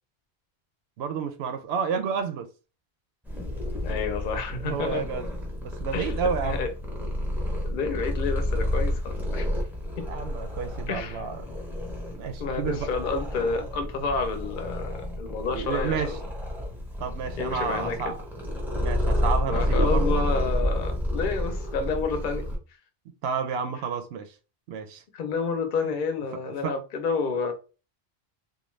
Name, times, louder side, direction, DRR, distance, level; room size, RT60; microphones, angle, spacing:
voice 1, 1.0-2.5 4.6-5.3 5.6-6.6 10.1-11.4 12.2-12.9 15.5-16.1 17.0-18.2 18.8-20.2 23.2-24.3 24.7-25.0 25.8-25.9 26.5-26.8, right 6 dB, 75° right, 0.8 m, -30 dB
Purr, 3.2-22.6, left 1 dB, ahead, 0.6 m, -30 dB
voice 2, 3.8-5.1 5.9-6.1 6.4-6.7 7.6-9.5 10.0-10.1 10.9-11.2 12.4-16.2 17.4-18.1 19.5-22.4 25.1-27.5, left 4 dB, 55° left, 0.7 m, -30 dB
2.5 x 2.2 x 3.1 m
omnidirectional pair, 1.1 m